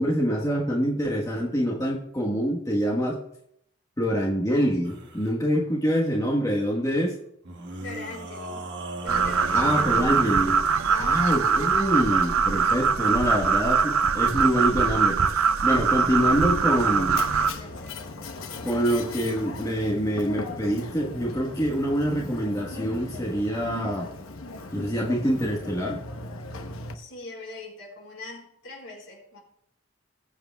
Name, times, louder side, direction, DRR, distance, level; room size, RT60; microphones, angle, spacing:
voice 1, 0.0-3.2 4.0-7.1 9.5-10.6 11.0-17.2 18.6-24.1 24.7-26.0, equal, 15° left, -2 dB, 1.3 m, -25 dB
sound 1, 4.8-5.3 7.4-10.9, right 1 dB, 55° right, 1.4 m, -38 dB
voice 2, 7.8-8.7 9.0-9.9 10.9-11.3 17.3-18.0 18.8-19.2 26.9-29.4, left 2 dB, 70° left, -1 dB, 4.5 m, -42 dB
sound 2, 9.1-17.5, right 6 dB, 80° right, 0.6 m, -22 dB
Mechanisms, 16.2-26.9, left 3 dB, 85° left, 1.0 m, -38 dB
20.0 x 7.9 x 2.3 m, 0.73 s
head